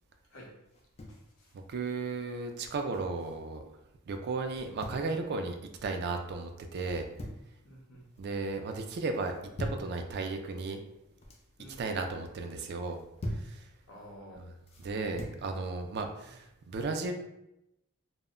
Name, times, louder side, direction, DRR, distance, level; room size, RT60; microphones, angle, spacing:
sound 1, 0.7-1.3 2.6-3.2 4.5-5.1 6.8-7.5 7.9-8.4 9.2-9.9 10.9-11.5 12.8-13.5 14.7-15.4, equal, 30° left, 0.4 m, -41 dB
voice 1, 1.1-1.5 7.6-8.1 11.6-11.8 13.9-14.4 14.8-14.9 16.3-16.4, equal, 65° left, -3 dB, 0.8 m, -51 dB
voice 2, 1.7-3.6 4.1-7.0 8.2-9.3 9.6-10.8 11.8-13.0 13.3-13.7 14.8-17.1, right 3 dB, 50° right, 5 dB, 0.3 m, -35 dB
2.1 x 2.0 x 3.5 m, 0.87 s
head